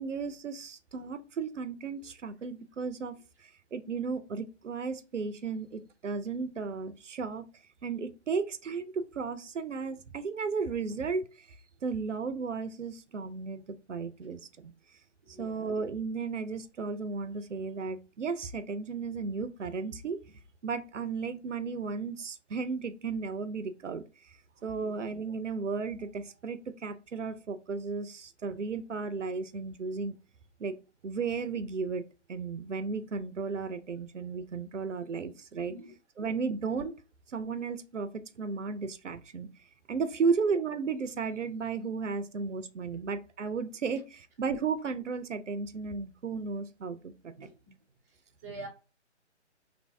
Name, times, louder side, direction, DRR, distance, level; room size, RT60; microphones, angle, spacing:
voice 1, 0.0-3.2 3.7-7.5 7.8-11.5 11.8-13.6 13.9-14.7 15.3-20.2 20.6-24.3 24.6-30.2 30.6-30.8 31.0-32.0 32.3-35.7 36.2-36.9 37.3-39.5 39.9-47.3, right 5 dB, 90° right, 0.6 m, -34 dB
voice 2, 15.2-15.7 24.8-25.0 35.7-35.9 36.2-36.3 40.1-40.3 47.3-47.8 48.1-48.7, right 2 dB, 15° right, 0.5 m, -47 dB
3.0 x 2.6 x 3.4 m
figure-of-eight pair, 140°, 35 cm